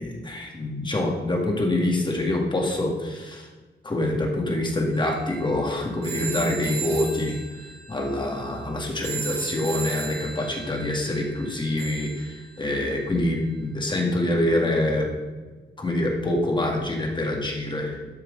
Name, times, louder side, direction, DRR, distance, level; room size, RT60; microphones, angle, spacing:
voice 1, 0.0-3.5 3.8-7.4 7.9-15.1 15.8-18.0, left 1 dB, 25° left, 0 dB, 2.0 m, -25 dB
sound 1, 4.9-13.0, right 5 dB, 70° right, 3.1 m, -37 dB
12.5 x 6.3 x 5.2 m, 1.3 s
wide cardioid pair, 150°, 18 cm